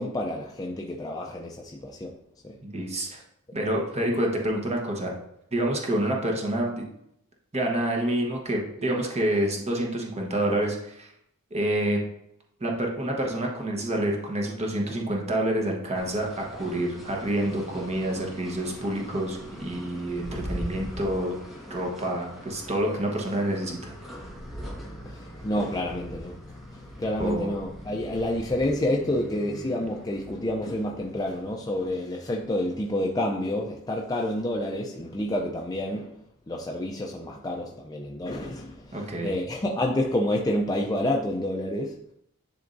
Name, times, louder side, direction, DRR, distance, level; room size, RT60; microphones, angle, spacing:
voice 1, 0.0-2.1 2.4-2.5 25.0-26.3 26.7-36.1 36.5-42.0, left 1 dB, 15° left, 0 dB, 0.5 m, -29 dB
voice 2, 2.6-3.2 3.5-5.1 5.5-6.8 7.5-11.1 11.5-12.0 12.6-21.3 21.7-23.9 27.2-27.5 38.9-39.3, right 1 dB, 30° right, 0 dB, 1.1 m, -28 dB
sound 1, 15.9-31.9, equal, ahead, 1.3 m, -41 dB
10.5 x 3.5 x 2.6 m, 0.75 s
head